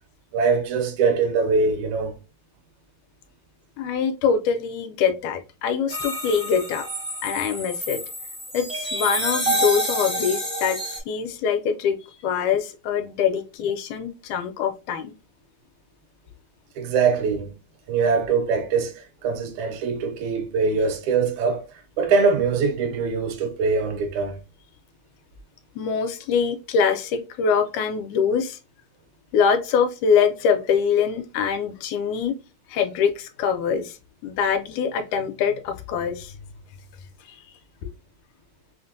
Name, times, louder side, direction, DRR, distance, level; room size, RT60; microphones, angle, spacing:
voice 1, 0.3-2.2 16.8-17.5 17.9-21.7 22.0-24.4, right 5 dB, 75° right, 1.9 m, -23 dB
voice 2, 3.8-6.9 7.2-8.0 8.5-12.0 12.2-15.1 25.8-28.6 29.3-32.3 32.7-34.0 34.2-36.5 37.3-37.4 37.8-37.9, left 6 dB, 80° left, 1.9 m, -24 dB
sound 1, 5.9-11.0, equal, 40° right, 0.4 m, -28 dB
5.7 x 2.1 x 2.5 m
omnidirectional pair, 3.6 m